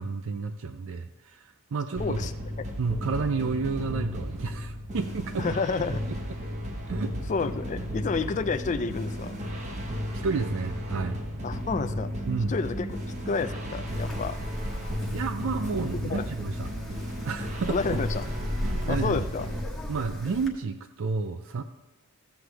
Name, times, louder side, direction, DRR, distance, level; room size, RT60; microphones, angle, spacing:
voice 1, 0.0-2.2 2.8-5.6 6.9-7.1 9.9-11.2 12.3-12.6 15.0-16.7 17.2-17.8 18.6-19.2 19.9-21.6, right 4 dB, 60° right, 9 dB, 0.4 m, -31 dB
voice 2, 2.0-2.3 5.4-6.0 7.3-9.4 11.4-12.1 12.5-13.0 13.3-14.4 16.1-16.2 17.7-18.3 18.9-19.5, left 4 dB, 35° left, 9 dB, 0.4 m, -29 dB
sound 1, 2.0-19.7, equal, 35° right, 1.2 m, -34 dB
Wind, 13.9-20.5, equal, ahead, 1.2 m, -37 dB
14.5 x 7.8 x 3.4 m, 1.1 s
head